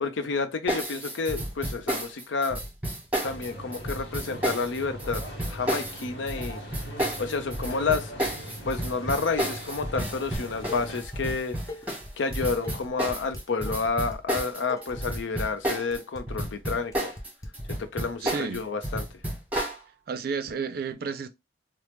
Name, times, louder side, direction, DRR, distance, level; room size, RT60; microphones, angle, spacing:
voice 1, 0.0-2.6 3.2-5.2 5.5-6.6 7.2-8.1 8.6-11.6 12.2-17.1 17.7-19.1, left 4 dB, 80° left, 0.5 m, -30 dB
sound 1, 0.7-16.0 16.3-19.8, right 1 dB, 10° right, 1.0 m, -31 dB
sound 2, 3.2-11.0, equal, 60° left, 1.1 m, -41 dB
Dishes pots and pans, 10.3-11.4 11.7-17.5, left 1 dB, 20° left, 0.5 m, -40 dB
voice 2, 18.2-18.7 20.1-21.3, right 5 dB, 50° right, 0.4 m, -31 dB
3.2 x 2.0 x 3.0 m
head